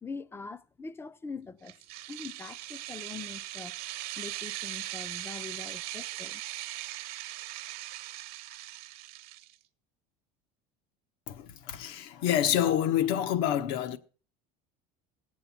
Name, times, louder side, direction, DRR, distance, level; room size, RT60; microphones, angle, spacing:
voice 1, 0.0-1.7 2.1-3.7 4.2-6.4, left 4 dB, 15° left, 0.5 m, -43 dB
sound 1, 1.7-9.5, right 16 dB, 65° right, 1.0 m, -40 dB
voice 2, 11.3-14.0, left 10 dB, 75° left, 1.1 m, -27 dB
16.5 x 7.9 x 5.8 m
cardioid pair, 135°, 17 cm